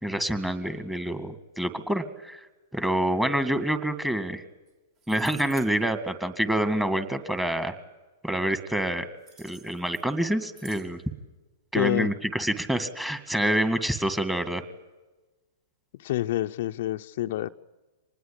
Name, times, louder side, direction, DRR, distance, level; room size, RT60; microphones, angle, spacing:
voice 1, 0.0-2.4 2.7-4.4 5.1-7.7 8.2-9.1 9.4-11.0 11.7-14.6, right 1 dB, 5° right, 10 dB, 2.1 m, -27 dB
sound 1, 4.7-4.8 5.0-5.7 9.2-10.1 10.5-10.9, right 5 dB, 40° right, 3.4 m, -49 dB
voice 2, 11.7-12.1 16.0-17.5, left 14 dB, 60° left, 7 dB, 0.7 m, -27 dB
25.0 x 20.0 x 8.7 m, 1.1 s
hypercardioid pair, 115°, 0 cm